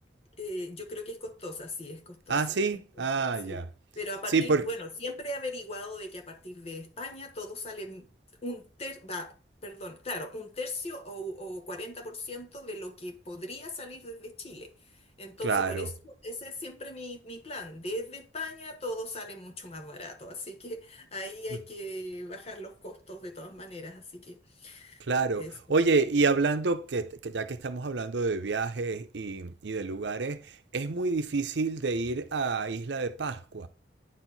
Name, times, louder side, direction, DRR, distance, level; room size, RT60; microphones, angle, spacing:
voice 1, 0.4-2.8 3.2-3.6 3.9-8.1 8.4-9.3 9.6-25.0 25.3-25.5, left 1 dB, 35° left, 1.2 m, -39 dB
voice 2, 2.3-3.7 4.3-4.7 15.4-15.9 25.1-25.4 25.7-33.7, right 4 dB, 80° right, 0.7 m, -28 dB
9.5 x 4.6 x 4.0 m
head